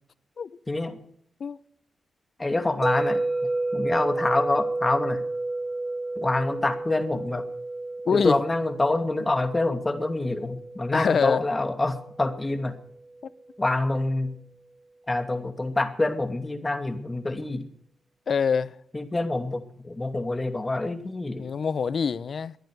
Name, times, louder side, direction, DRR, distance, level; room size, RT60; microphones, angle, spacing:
voice 1, 0.7-1.0 2.4-3.2 3.7-5.2 6.2-7.4 8.1-12.7 13.6-14.4 15.1-17.7 18.9-21.4, left 2 dB, 25° left, 2.6 m, -26 dB
sound 1, 2.8-12.9, right 2 dB, 15° right, 0.7 m, -31 dB
voice 2, 8.1-8.4 10.9-11.4 18.3-18.7 21.4-22.6, left 6 dB, 60° left, 0.7 m, -24 dB
23.5 x 9.3 x 6.6 m
supercardioid pair, 55°, 0 cm